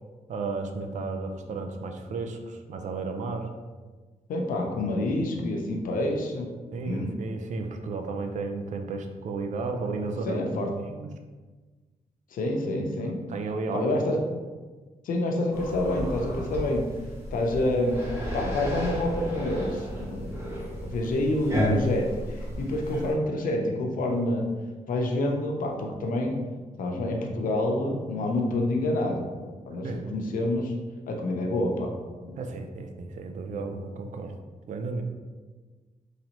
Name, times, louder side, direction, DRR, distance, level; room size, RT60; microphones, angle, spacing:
voice 1, 0.3-3.6 6.7-11.1 13.0-13.9 29.8-30.1 32.4-34.4 34.7-35.0, right 3 dB, 65° right, 5 dB, 0.4 m, -33 dB
voice 2, 4.3-6.5 6.8-7.1 9.6-9.7 10.3-10.7 12.3-13.2 13.7-14.2 15.0-16.8 17.3-18.0 18.3-24.4 24.9-26.4 26.8-29.3 29.7-30.7 31.1-31.9 32.2-32.4, left 1 dB, 85° left, 2 dB, 0.7 m, -28 dB
sound 1, 15.5-23.1, equal, 15° right, 1.1 m, -33 dB
4.0 x 3.2 x 3.0 m, 1.3 s
wide cardioid pair, 165°, 14 cm